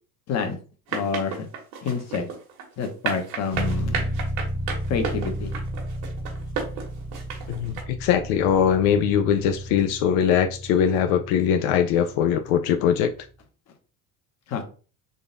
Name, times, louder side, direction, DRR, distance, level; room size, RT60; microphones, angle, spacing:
voice 1, 0.3-0.6 0.9-1.5 1.8-2.3 2.8-4.0 4.9-5.5 14.5-14.6, left 5 dB, 40° left, 1.0 m, -28 dB
sound 1, 0.9-7.8, right 6 dB, 85° right, 1.4 m, -32 dB
sound 2, 3.5-13.3, equal, 5° left, 0.3 m, -33 dB
voice 2, 7.5-13.1, left 8 dB, 80° left, 0.5 m, -21 dB
3.8 x 2.3 x 3.9 m
cardioid pair, 130°, 41 cm